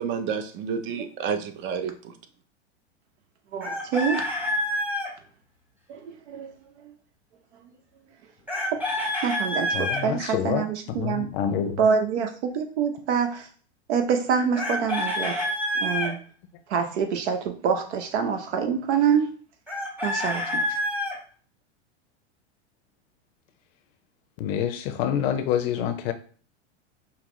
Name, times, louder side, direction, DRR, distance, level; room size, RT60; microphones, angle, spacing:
voice 1, 0.0-2.1, right 6 dB, 35° right, 0.5 m, -30 dB
voice 2, 3.5-4.2 5.9-6.5 9.2-11.3 11.8-13.5 13.9-15.4 15.8-16.2 16.7-19.3 20.0-20.8, right 7 dB, 70° right, 0.9 m, -26 dB
Chicken rooster, 3.6-5.1 8.5-10.0 14.6-16.1 19.7-21.2, left 1 dB, 5° right, 1.0 m, -27 dB
voice 3, 9.7-11.9 24.4-26.1, left 9 dB, 55° left, 0.6 m, -27 dB
5.5 x 2.0 x 3.0 m
hypercardioid pair, 115°, 35 cm